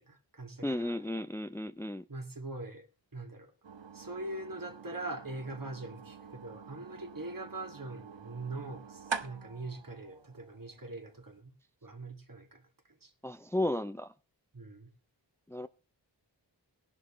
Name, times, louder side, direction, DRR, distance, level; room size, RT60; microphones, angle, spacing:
voice 1, 0.0-1.0 2.1-2.9 3.1-3.5 3.9-11.5 11.8-13.1 14.5-14.9, right 2 dB, 50° right, 2.3 m, -42 dB
voice 2, 0.6-2.0 13.2-14.1 15.5-15.7, left 1 dB, 5° left, 0.6 m, -34 dB
sound 1, 3.6-11.4, right 5 dB, 90° right, 1.3 m, -45 dB
19.0 x 11.0 x 3.1 m
wide cardioid pair, 60°, 44 cm